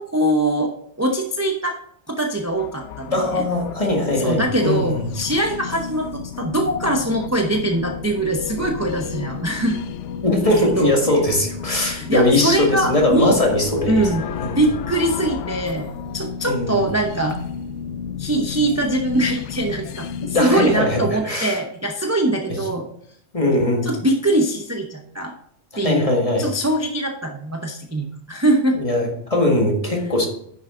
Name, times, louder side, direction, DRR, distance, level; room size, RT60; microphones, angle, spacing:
voice 1, 0.0-1.8 2.1-3.4 4.2-9.8 10.8-11.2 11.8-13.4 13.9-14.2 14.5-17.4 18.2-22.9 23.8-25.3 25.8-26.1 26.4-28.8, right 1 dB, 15° right, 2 dB, 0.7 m, -22 dB
sound 1, 2.4-21.2, left 7 dB, 75° left, 0.9 m, -32 dB
voice 2, 3.1-5.0 10.2-14.1 14.4-14.6 16.4-16.8 20.3-21.6 23.3-23.9 25.8-26.5 28.7-30.3, left 1 dB, 30° left, 0 dB, 1.8 m, -20 dB
9.8 x 6.3 x 3.7 m, 0.68 s
omnidirectional pair, 1.3 m